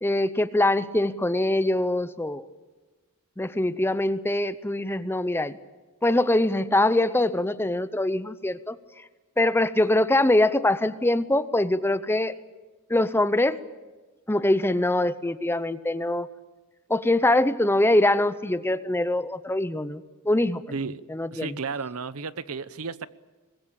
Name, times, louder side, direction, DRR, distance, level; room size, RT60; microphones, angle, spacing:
voice 1, 0.0-2.4 3.4-5.6 6.0-8.8 9.4-12.3 12.9-13.6 14.3-16.3 16.9-20.6 21.1-21.5, left 1 dB, 10° left, 14 dB, 0.7 m, -23 dB
voice 2, 20.7-21.0 21.3-23.1, right 5 dB, 75° right, 16 dB, 0.8 m, -33 dB
24.0 x 20.5 x 8.8 m, 1.2 s
head